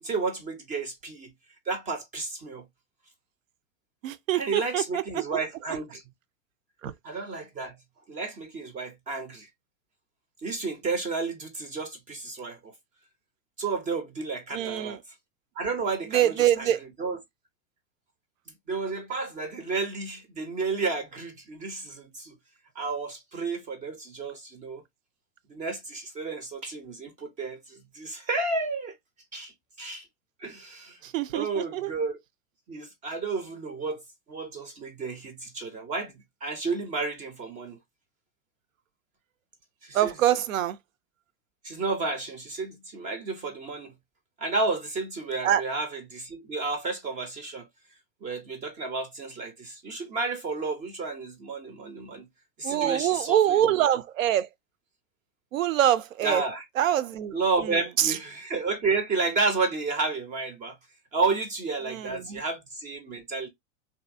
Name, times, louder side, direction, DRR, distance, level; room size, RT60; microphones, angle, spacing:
voice 1, 0.0-1.3 1.7-2.7 4.3-6.0 7.0-7.8 8.1-9.5 10.4-12.7 13.6-15.0 15.6-17.2 18.7-22.4 22.8-24.8 25.5-28.9 29.3-30.1 30.4-31.0 31.3-32.2 32.7-34.0 34.3-37.8 39.8-40.4 41.6-43.9 44.4-47.7 48.2-52.3 52.6-53.9 56.2-56.7 57.3-60.8 61.1-63.5, right 3 dB, 20° right, 0.4 m, -31 dB
voice 2, 4.0-5.0 6.8-6.9 14.5-15.0 16.1-16.8 31.0-31.9 39.9-40.8 45.4-45.6 52.6-54.5 55.5-56.4 56.8-57.3 58.0-58.1 61.9-62.4, right 11 dB, 75° right, 0.5 m, -24 dB
2.7 x 2.6 x 2.4 m
hypercardioid pair, 100°, 40 cm